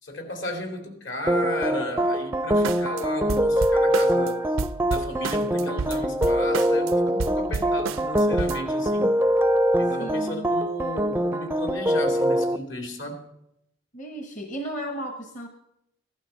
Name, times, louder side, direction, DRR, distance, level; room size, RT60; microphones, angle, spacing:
voice 1, 0.0-4.4 4.9-9.2 9.8-13.2, left 1 dB, 65° left, 4 dB, 2.8 m, -34 dB
sound 1, 1.3-12.6, equal, 10° right, 0.4 m, -23 dB
sound 2, 2.6-3.0 3.3-4.3 4.6-6.9 7.2-8.6, right 4 dB, 85° right, 0.5 m, -30 dB
voice 2, 10.0-10.5 13.9-15.5, right 1 dB, 40° left, 5 dB, 1.1 m, -34 dB
15.0 x 11.5 x 5.7 m, 0.80 s
head